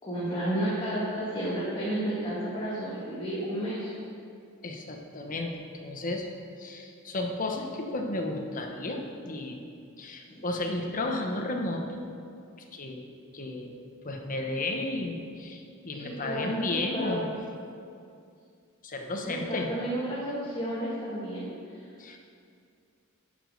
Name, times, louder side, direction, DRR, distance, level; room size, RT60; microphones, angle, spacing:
voice 1, 0.0-3.9 10.3-10.4 15.9-17.2 19.2-21.5, right 1 dB, 25° left, -9 dB, 1.7 m, -32 dB
voice 2, 4.6-6.3 6.6-9.0 9.3-9.6 10.0-12.1 12.7-13.1 13.3-13.7 14.0-17.3 18.8-19.7 22.0-22.2, left 2 dB, 40° left, 2 dB, 1.0 m, -33 dB
10.0 x 5.2 x 6.7 m, 2.4 s
head